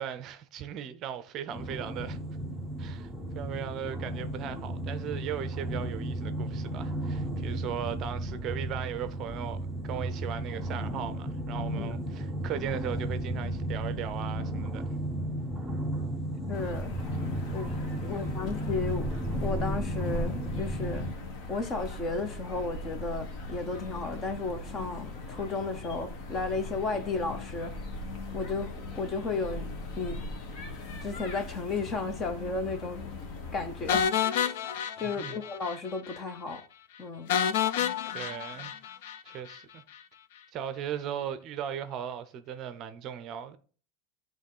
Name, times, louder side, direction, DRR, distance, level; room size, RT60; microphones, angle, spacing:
voice 1, 0.0-2.2 2.8-3.1 3.3-9.6 9.8-14.9 18.0-18.2 35.0-35.4 38.1-38.7 39.2-39.8 40.5-43.6, right 9 dB, 35° right, 0.6 m, -37 dB
sound 1, 1.5-21.1, right 1 dB, 5° right, 0.8 m, -34 dB
sound 2, 16.5-34.0, left 2 dB, 45° left, 1.4 m, -39 dB
voice 2, 16.5-16.9 17.5-17.8 18.1-19.1 19.4-21.1 21.5-27.7 28.3-29.7 30.0-30.2 31.0-33.0 33.5-34.1 34.4-34.5 35.0-36.6 37.0-37.3, left 3 dB, 25° left, 0.8 m, -34 dB
sound 3, 33.9-35.8 36.1-36.2 36.5-36.6 37.3-39.6, left 8 dB, 70° left, 0.5 m, -29 dB
9.1 x 3.1 x 5.4 m
supercardioid pair, 155°, 0 cm